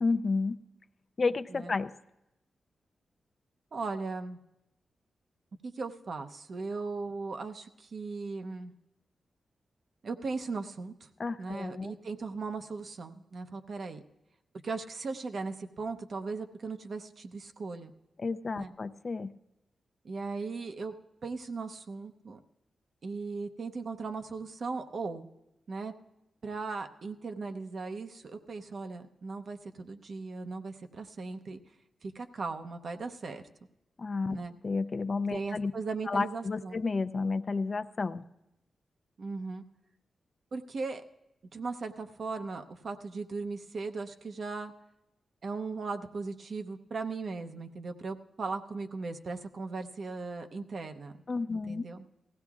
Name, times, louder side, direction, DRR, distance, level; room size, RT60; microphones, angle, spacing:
voice 1, 0.0-0.6 1.2-1.9 11.2-11.9 18.2-19.3 34.0-34.4 34.6-35.7 36.1-38.2 51.3-51.9, left 4 dB, 50° left, 11 dB, 0.4 m, -31 dB
voice 2, 3.7-4.4 5.6-8.7 10.0-11.1 11.4-14.0 14.6-17.9 18.6-18.7 20.0-20.9 21.2-22.4 23.0-25.3 25.7-25.9 26.4-31.6 32.0-33.4 34.3-34.5 35.3-36.8 39.2-39.6 40.5-41.0 41.5-44.7 45.4-51.1 51.5-52.0, right 4 dB, 60° right, 7 dB, 0.7 m, -38 dB
19.0 x 15.5 x 2.4 m, 0.89 s
cardioid pair, 65°, 0 cm